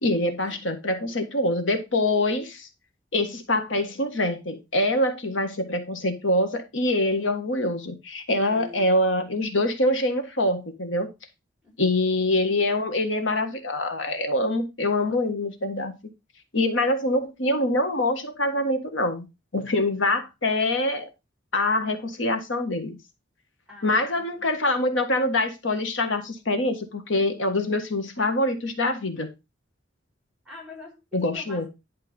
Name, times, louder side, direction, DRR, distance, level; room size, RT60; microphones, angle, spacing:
voice 1, 0.0-2.7 3.1-11.1 11.8-15.9 16.5-19.3 19.5-21.1 21.5-23.0 23.8-29.3 31.1-31.6, left 1 dB, 85° left, 1.6 m, -25 dB
voice 2, 8.4-9.1 11.6-11.9 23.7-24.5 30.4-31.7, left 3 dB, 5° right, 4.0 m, -45 dB
11.0 x 4.4 x 5.3 m
head